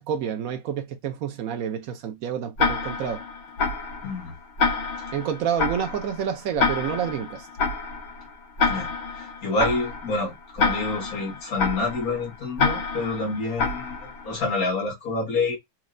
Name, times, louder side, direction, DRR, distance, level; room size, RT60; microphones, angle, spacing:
voice 1, 0.0-3.2 5.1-7.5, right 8 dB, 85° right, 0.7 m, -29 dB
Tick-tock, 2.6-14.4, left 4 dB, 70° left, 2.1 m, -28 dB
voice 2, 4.0-4.3 8.7-8.9 9.2-15.6, left 3 dB, 45° left, 2.0 m, -28 dB
4.4 x 3.0 x 2.5 m
omnidirectional pair, 2.3 m